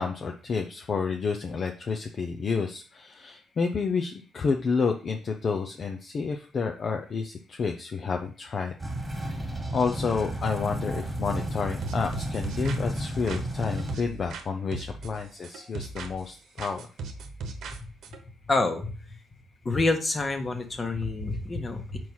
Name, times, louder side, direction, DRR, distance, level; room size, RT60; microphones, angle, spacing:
voice 1, 0.0-8.7 9.7-16.9, left 5 dB, 45° left, 4 dB, 0.7 m, -30 dB
sound 1, 8.8-14.0, right 1 dB, 15° right, 1.8 m, -32 dB
sound 2, 11.8-14.5 14.7-16.3 16.6-18.2, right 4 dB, 75° right, 1.0 m, -39 dB
voice 2, 18.5-18.9 19.6-22.0, left 3 dB, 30° left, 6 dB, 1.3 m, -27 dB
4.7 x 4.5 x 5.6 m, 0.38 s
cardioid pair, 90°, 0 cm